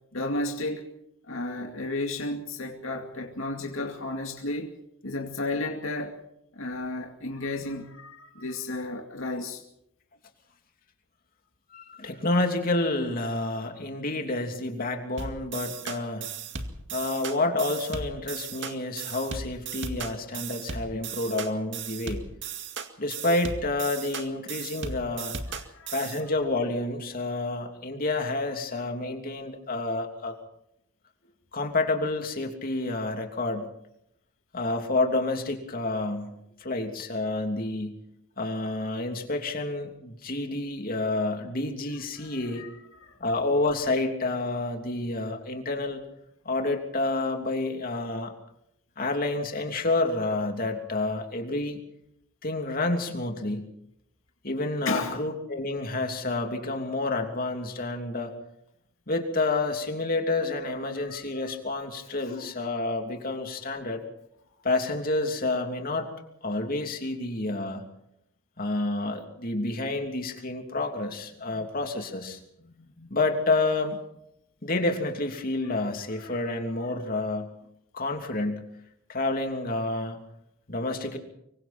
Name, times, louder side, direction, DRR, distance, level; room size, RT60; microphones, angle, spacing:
voice 1, 0.1-0.9 1.3-4.7 5.0-6.2 6.6-9.6 25.5-26.0 42.2-42.7 43.0-43.2 54.8-55.2 60.9-61.4 62.2-62.4 73.0-73.1 75.6-75.7 76.1-76.5, left 2 dB, 75° left, 2.3 m, -33 dB
voice 2, 11.7-16.3 16.9-22.2 23.0-25.3 25.9-30.3 31.5-33.7 34.5-36.3 36.6-38.0 38.4-42.7 43.2-46.0 46.4-48.3 49.0-51.8 52.4-53.7 54.4-58.3 59.1-64.0 64.6-66.1 66.4-67.8 68.6-72.4 73.1-74.0 74.6-77.5 77.9-78.6 79.1-80.2 80.7-81.2, left 2 dB, 45° left, 3.1 m, -29 dB
sound 1, 15.2-26.2, right 5 dB, 60° right, 2.2 m, -36 dB
25.5 x 23.5 x 4.4 m
head